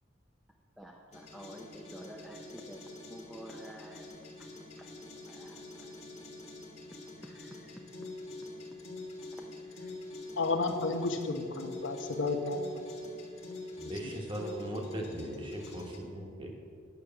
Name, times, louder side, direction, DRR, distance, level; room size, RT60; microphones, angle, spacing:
voice 1, 0.8-2.8 3.1-4.0 4.8-4.9 5.2-5.9 7.2-7.7 9.7-9.9 11.0-11.1, right 1 dB, ahead, -1 dB, 0.5 m, -49 dB
sound 1, 1.1-16.0, left 2 dB, 30° left, 1.3 m, -45 dB
voice 2, 10.4-12.8, left 3 dB, 70° left, 5 dB, 1.0 m, -32 dB
voice 3, 13.8-16.5, equal, 25° right, 0 dB, 1.3 m, -39 dB
9.2 x 6.4 x 7.0 m, 2.5 s
head